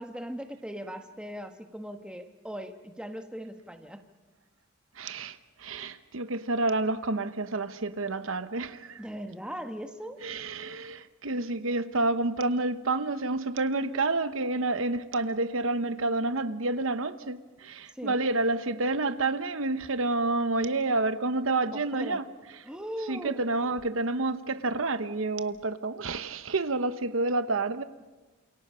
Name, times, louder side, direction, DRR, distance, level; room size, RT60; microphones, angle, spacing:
voice 1, 0.0-4.0 9.0-10.2 17.9-18.2 21.7-22.2 22.7-23.4, equal, 5° right, 1.3 m, -39 dB
voice 2, 5.0-9.0 10.2-22.3 23.1-27.8, right 2 dB, 75° right, 1.0 m, -29 dB
29.0 x 27.5 x 5.6 m
head